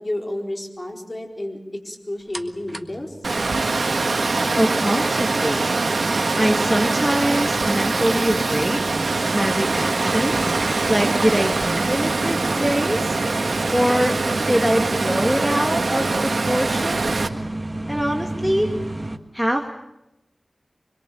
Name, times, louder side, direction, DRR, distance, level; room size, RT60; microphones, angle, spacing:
voice 1, 0.0-3.2, left 1 dB, 35° left, 2 dB, 4.3 m, -31 dB
sound 1, 2.3-19.2, right 1 dB, 30° right, 1.6 m, -33 dB
Water, 3.2-17.3, right 3 dB, 85° right, 1.6 m, -23 dB
voice 2, 4.6-5.7 6.4-8.8 9.3-10.4 10.9-13.2 13.7-14.2 14.5-17.1 17.9-18.8 19.3-19.7, equal, ahead, 1 dB, 2.1 m, -23 dB
24.5 x 22.5 x 7.2 m, 0.90 s
wide cardioid pair, 50°, 0 cm